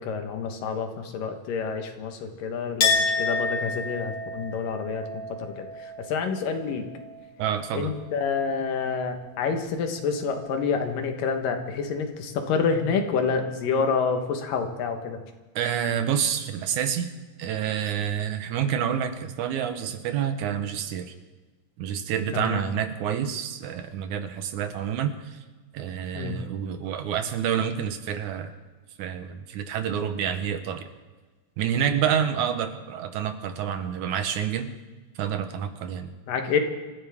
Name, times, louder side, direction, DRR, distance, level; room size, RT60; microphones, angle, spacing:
voice 1, 0.0-5.2 5.6-6.8 7.7-15.2 22.3-22.6 26.1-26.3 31.8-31.9 36.3-36.6, left 5 dB, 85° left, 5 dB, 3.0 m, -28 dB
Chink clink, 2.8-8.3 8.6-9.5, left 3 dB, 40° left, 2.8 m, -30 dB
voice 2, 7.4-7.9 15.6-17.1 17.4-21.1 21.8-25.4 25.7-28.5 29.0-30.9 31.6-34.7 35.2-36.1, right 8 dB, 70° right, 8 dB, 2.3 m, -28 dB
25.5 x 15.0 x 3.6 m, 1.3 s
omnidirectional pair, 3.8 m